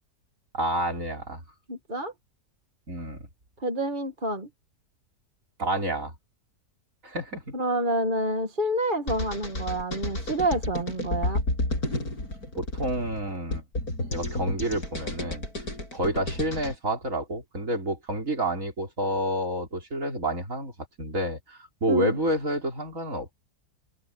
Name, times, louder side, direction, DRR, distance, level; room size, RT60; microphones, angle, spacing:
voice 1, 0.5-1.4 2.9-3.3 5.6-6.1 7.0-7.4 12.6-13.6 14.1-15.5 15.9-20.7 21.0-23.3, right 1 dB, 55° right, 4.9 m, -29 dB
voice 2, 1.7-2.1 3.6-4.5 7.5-11.4 21.9-22.1, right 1 dB, 30° right, 2.0 m, -28 dB
sound 1, 9.1-16.8, left 1 dB, 70° left, 8.1 m, -31 dB
open air
omnidirectional pair, 1.7 m